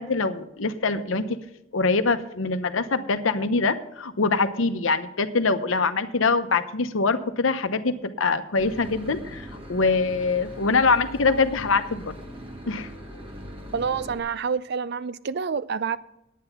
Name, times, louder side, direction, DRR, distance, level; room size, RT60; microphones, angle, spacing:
voice 1, 0.0-1.4 1.7-12.1 12.7-12.9, left 4 dB, 75° left, 9 dB, 0.8 m, -24 dB
Boat Water vehicle / Engine, 8.6-14.2, equal, 25° right, 1.3 m, -40 dB
voice 2, 13.7-16.0, right 6 dB, 55° right, 16 dB, 0.4 m, -28 dB
9.9 x 9.4 x 5.8 m, 0.85 s
head